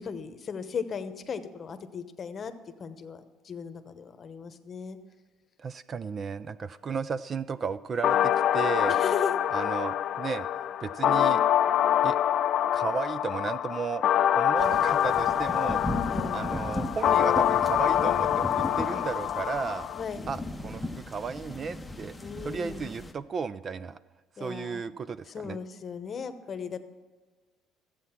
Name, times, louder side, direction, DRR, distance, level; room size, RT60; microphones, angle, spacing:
voice 1, 0.0-2.5 2.8-5.0 8.9-9.4 16.0-16.5 20.0-20.3 22.2-22.9 24.4-24.8 25.3-26.8, left 6 dB, 35° left, 9 dB, 0.9 m, -36 dB
voice 2, 5.6-9.0 9.5-10.5 10.8-11.4 12.0-12.2 12.7-14.0 14.4-19.9 20.3-22.1 22.4-24.0 24.4-25.6, right 5 dB, 30° right, 16 dB, 0.3 m, -34 dB
sound 1, 8.0-20.0, left 10 dB, 50° left, 0.4 m, -25 dB
sound 2, 14.6-23.1, left 1 dB, 5° left, 0.7 m, -37 dB
14.5 x 8.3 x 5.8 m, 1.4 s
cardioid pair, 135°, 0 cm